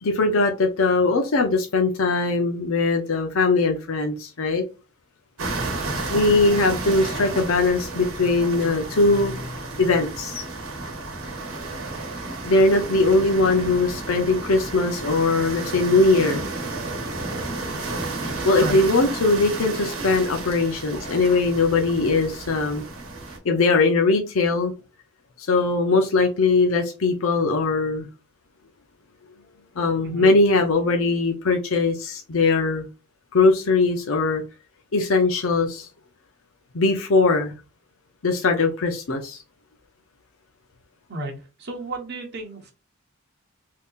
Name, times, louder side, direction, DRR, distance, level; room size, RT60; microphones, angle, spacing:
voice 1, 0.0-4.6 6.1-9.5 9.8-10.5 12.4-16.5 18.2-22.8 23.4-24.7 25.4-28.1 29.8-32.9 33.3-34.4 34.9-35.9 36.7-37.5 38.2-39.4, left 3 dB, 70° left, 3 dB, 0.6 m, -20 dB
sound 1, 5.4-23.4, right 2 dB, 80° right, 1.2 m, -32 dB
voice 2, 41.6-42.7, right 1 dB, 50° right, 1 dB, 1.1 m, -32 dB
3.6 x 2.8 x 2.4 m, 0.31 s
head